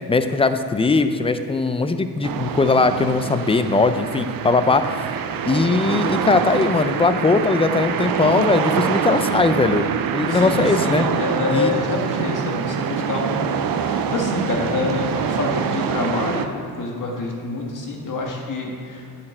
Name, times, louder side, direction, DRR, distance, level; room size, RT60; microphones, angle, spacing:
voice 1, 0.1-4.8 5.4-11.0 11.5-11.7, left 3 dB, 15° left, 9 dB, 0.4 m, -19 dB
sound 1, 2.2-16.5, right 7 dB, 65° right, 0.6 m, -25 dB
voice 2, 10.3-16.5 16.8-19.0, left 3 dB, 55° left, 0 dB, 1.7 m, -26 dB
9.7 x 6.7 x 4.4 m, 2.8 s
cardioid pair, 100°, 37 cm